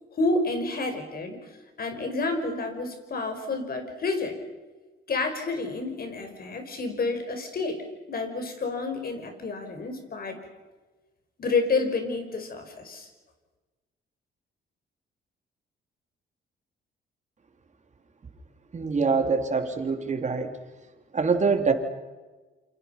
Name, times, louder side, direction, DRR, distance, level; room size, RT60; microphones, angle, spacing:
voice 1, 0.1-1.4 1.8-4.3 5.1-7.8 8.1-10.4 11.4-13.1, left 3 dB, 50° left, 6 dB, 5.6 m, -29 dB
voice 2, 18.7-20.5 21.1-21.7, right 4 dB, 35° right, 5 dB, 3.5 m, -24 dB
28.5 x 25.5 x 5.9 m, 1.3 s
cardioid pair, 90°, 20 cm